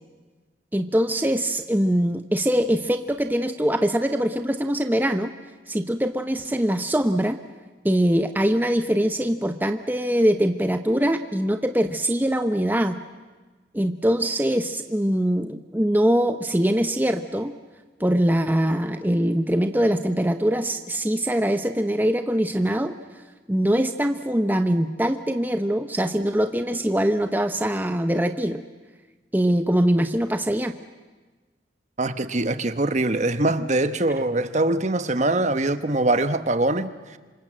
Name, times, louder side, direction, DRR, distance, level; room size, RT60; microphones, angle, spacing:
voice 1, 0.7-5.3 5.7-7.4 7.8-13.0 13.7-17.5 18.0-22.9 23.5-28.6 29.3-30.8, equal, 10° right, 7 dB, 0.8 m, -23 dB
voice 2, 32.0-37.2, right 2 dB, 40° right, 11 dB, 1.1 m, -23 dB
27.0 x 26.0 x 7.7 m, 1.3 s
head